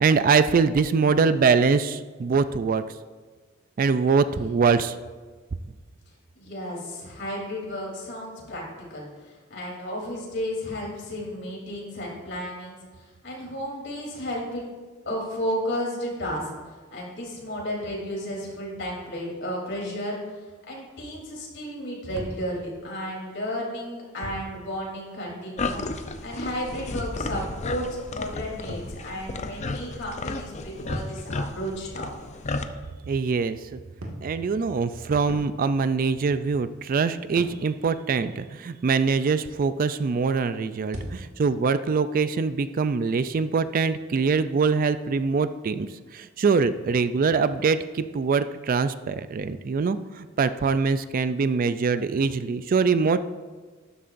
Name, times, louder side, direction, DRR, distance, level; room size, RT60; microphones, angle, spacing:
voice 1, 0.0-2.8 3.8-4.9 33.1-33.8 34.2-45.9 46.1-53.2, right 5 dB, 45° right, 13 dB, 0.4 m, -23 dB
voice 2, 6.3-8.6 8.9-14.7 15.1-16.5 16.9-20.2 20.7-25.8 26.2-32.1, equal, 60° left, -3 dB, 3.4 m, -33 dB
sound 1, 22.1-23.1 24.2-24.6 26.7-29.4 29.7-32.4 34.0-35.9 36.4-36.8 37.3-37.7 40.8-41.5, equal, 85° right, 1.8 m, -41 dB
sound 2, 25.6-32.6, left 3 dB, 35° left, 0.6 m, -33 dB
12.5 x 11.0 x 2.6 m, 1.4 s
head